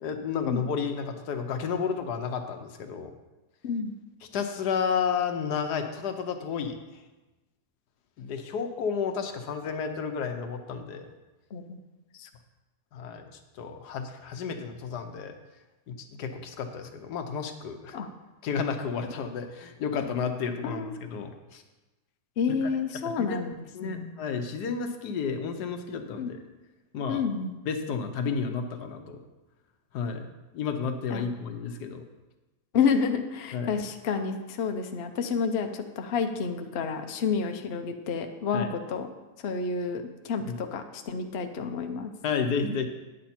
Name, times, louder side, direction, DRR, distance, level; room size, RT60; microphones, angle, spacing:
voice 1, 0.0-3.1 4.2-6.8 8.2-11.1 12.9-13.3 13.6-15.4 15.9-18.0 18.4-21.6 22.5-22.7 23.0-26.4 26.9-27.2 27.6-29.2 29.9-30.3 30.5-32.0 33.5-33.8 38.5-38.7 40.4-40.6 42.2-42.9, left 6 dB, 80° left, 6 dB, 1.4 m, -32 dB
voice 2, 20.6-21.1 22.4-23.5 23.8-24.1 26.2-26.3 27.1-27.5 31.1-31.2 32.7-39.1 39.4-42.1, left 5 dB, 50° left, 5 dB, 0.8 m, -29 dB
9.4 x 8.1 x 4.3 m, 1.1 s
omnidirectional pair, 1.7 m